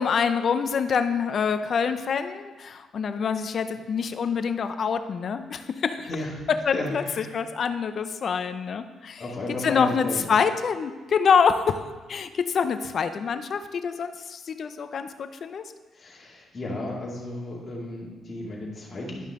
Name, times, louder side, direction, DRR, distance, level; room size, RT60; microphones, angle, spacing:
voice 1, 0.0-6.1 6.7-9.2 9.6-15.6, left 6 dB, 55° left, 10 dB, 0.6 m, -26 dB
voice 2, 6.7-7.3 9.2-10.3 16.0-19.3, left 2 dB, 35° left, -4 dB, 2.4 m, -33 dB
11.0 x 5.5 x 3.7 m, 1.3 s
cardioid pair, 90°, 0 cm